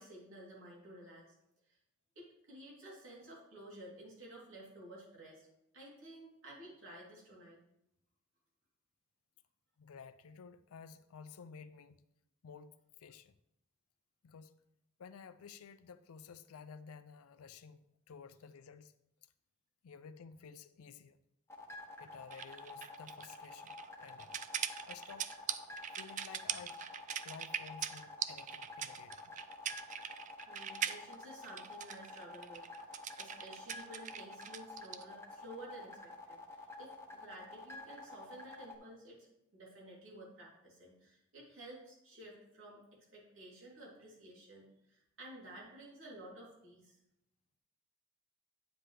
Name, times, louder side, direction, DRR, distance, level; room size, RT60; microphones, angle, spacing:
voice 1, 0.0-1.3 1.7-1.8 2.1-5.5 5.7-7.6 30.5-39.3 39.5-42.8 43.1-47.0, right 1 dB, 65° right, 3.1 m, -53 dB
voice 2, 9.8-12.0 12.4-13.4 14.2-14.6 15.0-18.9 19.8-21.2 22.0-25.3 26.0-26.8 27.2-29.4, left 6 dB, 90° left, 0.4 m, -53 dB
sound 1, 21.5-38.8, left 2 dB, 10° left, 0.8 m, -50 dB
sound 2, 22.3-35.0, right 9 dB, 35° right, 0.3 m, -41 dB
9.1 x 7.6 x 3.3 m
head